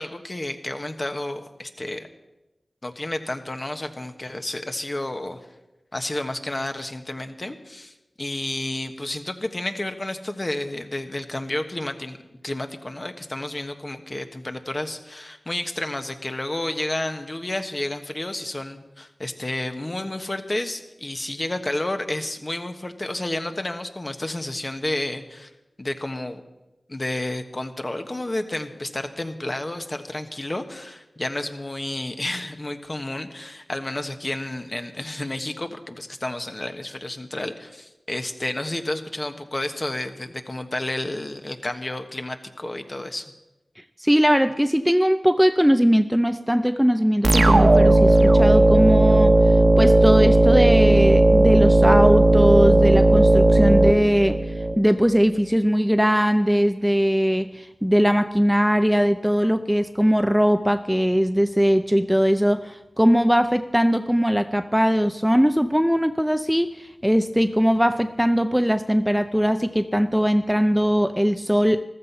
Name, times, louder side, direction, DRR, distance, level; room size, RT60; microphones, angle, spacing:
voice 1, 0.0-2.1 2.8-5.4 5.9-12.2 12.4-25.5 25.8-26.4 26.9-43.3, left 1 dB, 35° left, 7 dB, 1.3 m, -31 dB
voice 2, 44.0-49.4 49.8-54.4 54.8-71.8, equal, 5° right, 10 dB, 0.5 m, -20 dB
sound 1, 47.2-54.7, right 2 dB, 50° right, 1.2 m, -15 dB
14.5 x 13.5 x 5.6 m, 1.0 s
cardioid pair, 45°, 0 cm